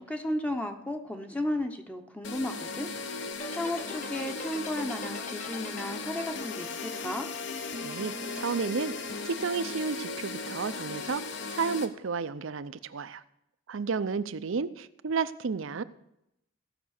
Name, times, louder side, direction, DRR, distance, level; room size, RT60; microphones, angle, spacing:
voice 1, 0.0-2.9 3.5-7.3, left 1 dB, 5° left, 5 dB, 0.8 m, -34 dB
sound 1, 2.2-11.9, left 4 dB, 60° left, 1.0 m, -37 dB
sound 2, 3.3-7.7, left 2 dB, 35° left, 1.3 m, -43 dB
voice 2, 7.8-13.2 13.7-15.8, right 5 dB, 65° right, 15 dB, 0.5 m, -32 dB
16.0 x 6.0 x 6.5 m, 0.83 s
head